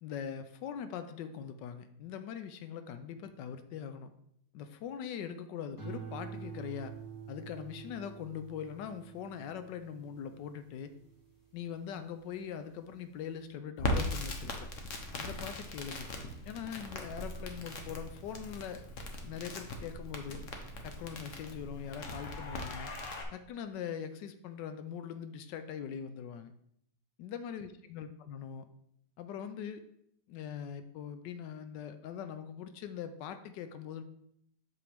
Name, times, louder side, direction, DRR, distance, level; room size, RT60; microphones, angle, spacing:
voice 1, 0.0-4.1 4.5-6.9 7.3-10.9 11.5-14.7 15.1-16.1 16.4-18.8 19.2-20.4 20.8-22.9 23.3-26.5 27.2-28.6 29.2-29.8 30.3-34.0, left 8 dB, 85° left, 9 dB, 1.2 m, -42 dB
sound 1, 5.8-12.3 12.8-13.2, right 7 dB, 10° left, 1.6 m, -48 dB
Crackle, 13.8-23.2, left 1 dB, 50° left, 1.2 m, -39 dB
7.7 x 6.2 x 3.4 m, 0.72 s
omnidirectional pair, 1.9 m